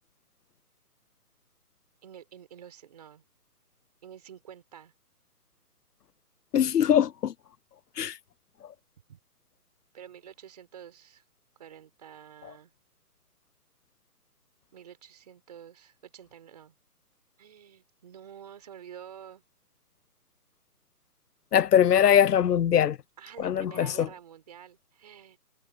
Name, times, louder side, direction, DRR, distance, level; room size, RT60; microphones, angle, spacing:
voice 1, 2.0-3.2 4.0-4.9 9.1-9.2 9.9-11.2 11.5-12.7 14.7-16.7 17.4-19.4 23.2-25.4, right 9 dB, 25° right, 4.8 m, -48 dB
voice 2, 6.5-7.3 8.0-8.1 21.5-23.0 23.4-24.1, left 9 dB, 85° left, 0.7 m, -22 dB
hypercardioid pair, 175°, 46 cm